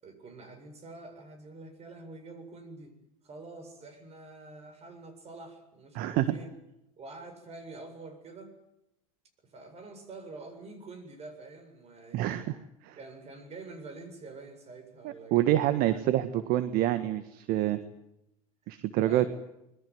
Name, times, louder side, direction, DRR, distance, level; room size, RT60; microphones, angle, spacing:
voice 1, 0.0-3.0 3.2-6.5 7.0-8.5 9.5-12.5 13.0-16.3 19.0-19.3, right 3 dB, 35° right, 9 dB, 7.6 m, -47 dB
voice 2, 5.9-6.4 12.1-12.5 12.9-13.0 15.0-17.8 18.7-19.3, right 13 dB, 50° right, 12 dB, 1.6 m, -27 dB
26.0 x 21.5 x 9.4 m, 0.88 s
hypercardioid pair, 85°, 19 cm